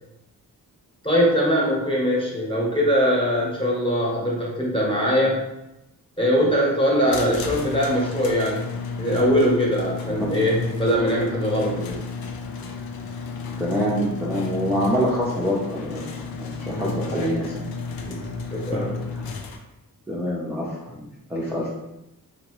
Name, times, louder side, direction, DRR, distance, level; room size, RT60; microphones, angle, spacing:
voice 1, 1.0-5.4 6.2-8.7 9.0-12.0 16.6-17.4 18.0-18.9, equal, 15° left, -4 dB, 1.1 m, -22 dB
sound 1, 7.1-19.6, left 5 dB, 80° left, 0.5 m, -33 dB
voice 2, 13.6-16.1 16.4-17.4 20.1-21.7, equal, 5° right, -7 dB, 0.6 m, -26 dB
2.8 x 2.7 x 3.0 m, 0.92 s
cardioid pair, 80°, 36 cm